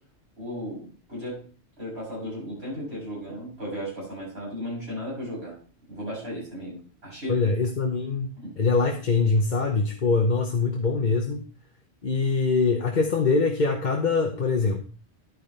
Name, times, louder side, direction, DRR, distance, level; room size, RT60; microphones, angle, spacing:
voice 1, 0.4-1.4 1.8-5.5 5.9-7.4 8.4-8.5, equal, 65° right, -6 dB, 7.0 m, -35 dB
voice 2, 7.3-8.3 8.6-11.4 12.0-14.8, left 4 dB, 45° left, 3 dB, 1.0 m, -23 dB
10.5 x 9.4 x 3.3 m, 0.38 s
omnidirectional pair, 1.2 m